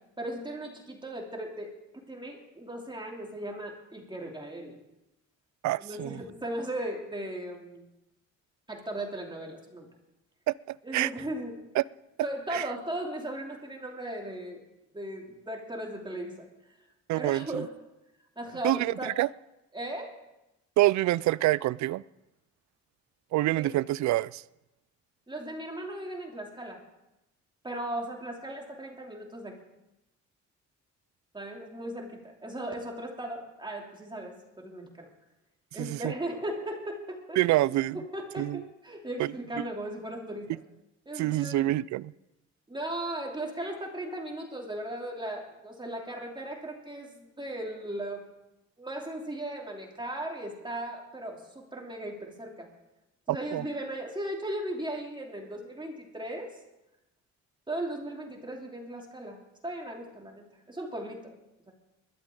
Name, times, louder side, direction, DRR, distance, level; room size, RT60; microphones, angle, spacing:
voice 1, 0.2-4.8 5.8-7.9 8.7-9.9 10.8-11.6 12.2-14.6 14.9-16.5 17.2-17.7 18.4-19.1 19.7-20.1 23.5-23.7 25.3-26.8 27.6-29.6 31.3-35.1 35.7-37.4 37.9-40.6 41.0-41.7 42.7-48.3 48.8-52.7 53.3-56.6 57.7-61.4 61.7-61.8, right 1 dB, 15° right, 3.0 m, -37 dB
voice 2, 5.6-6.2 10.5-11.1 11.8-11.9 12.5-12.7 17.1-17.7 18.6-19.3 20.8-22.0 23.3-24.4 35.8-36.1 37.4-38.0 38.4-38.6 39.2-39.3 39.6-39.7 41.2-42.1 53.3-53.6, right 16 dB, 70° right, 0.4 m, -27 dB
20.5 x 12.5 x 3.8 m
cardioid pair, 90°, 30 cm